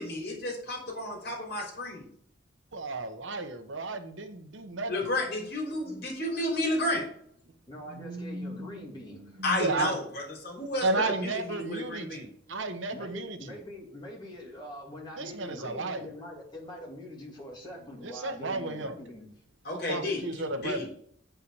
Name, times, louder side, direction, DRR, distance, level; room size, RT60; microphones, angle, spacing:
voice 1, 0.0-2.1 4.9-7.1 9.4-12.3 19.6-20.9, left 1 dB, 50° left, -2 dB, 3.4 m, -32 dB
voice 2, 2.7-4.9 5.9-6.0 7.9-9.9 10.8-13.6 15.2-16.1 18.0-18.9 19.9-20.9, right 2 dB, 70° right, 8 dB, 0.9 m, -33 dB
voice 3, 7.7-9.4 9.7-10.0 12.9-19.3, left 1 dB, 20° left, -3 dB, 2.5 m, -44 dB
8.3 x 5.6 x 4.8 m, 0.65 s
head